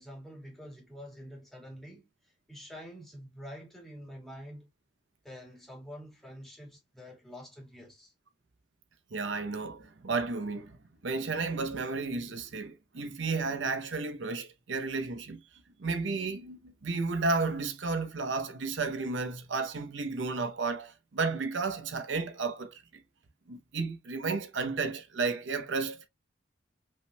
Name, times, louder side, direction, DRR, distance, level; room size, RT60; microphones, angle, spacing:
voice 1, 0.0-4.7 5.2-8.1, equal, ahead, 1.9 m, -47 dB
voice 2, 9.1-10.8 11.0-15.4 15.8-23.0 23.5-26.1, right 4 dB, 80° right, 0.7 m, -33 dB
5.5 x 3.5 x 2.2 m
head